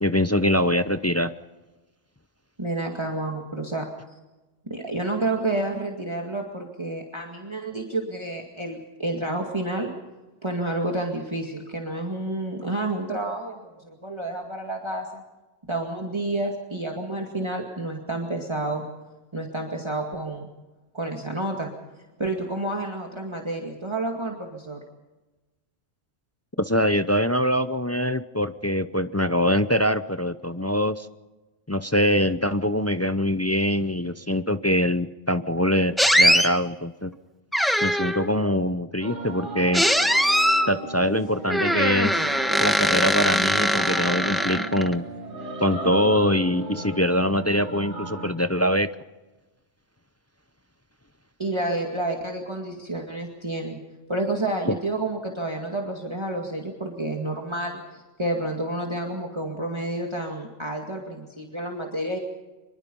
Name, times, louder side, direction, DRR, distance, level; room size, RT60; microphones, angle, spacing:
voice 1, 0.0-1.3 26.6-31.1 31.7-37.1 37.8-39.8 40.7-42.2 42.6-45.1 45.6-48.9 54.7-54.8, equal, 20° left, 11 dB, 0.4 m, -23 dB
voice 2, 2.6-3.9 4.7-9.9 10.4-15.2 15.7-18.8 19.3-20.5 20.9-21.7 22.2-24.8 51.4-53.8 54.1-62.2, right 2 dB, 20° right, 1 dB, 2.2 m, -29 dB
sound 1, 36.0-36.5 37.5-38.3 39.7-40.7 41.5-44.9, equal, ahead, 1.2 m, -21 dB
sound 2, 39.0-48.3, right 2 dB, 65° right, 3.8 m, -35 dB
25.0 x 22.5 x 5.5 m, 1.1 s
omnidirectional pair, 1.3 m